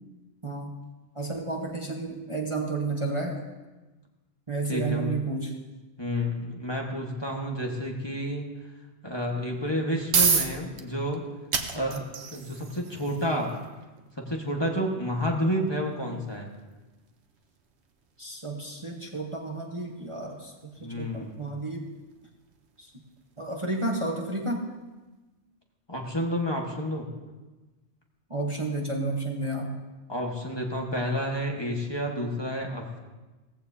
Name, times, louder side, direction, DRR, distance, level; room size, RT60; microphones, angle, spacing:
voice 1, 0.4-0.7 1.1-3.4 4.5-5.5 18.2-20.5 20.8-21.9 22.8-22.9 23.4-24.7 28.3-29.9, right 2 dB, 30° right, 0 dB, 1.1 m, -31 dB
voice 2, 4.7-5.2 6.0-8.4 9.0-11.2 11.7-13.5 14.2-16.5 20.8-21.4 25.9-27.1 30.1-33.0, equal, 25° left, 0 dB, 1.5 m, -30 dB
sound 1, 9.6-24.5, right 5 dB, 70° right, 1.2 m, -34 dB
17.0 x 15.0 x 2.8 m, 1.2 s
omnidirectional pair, 1.2 m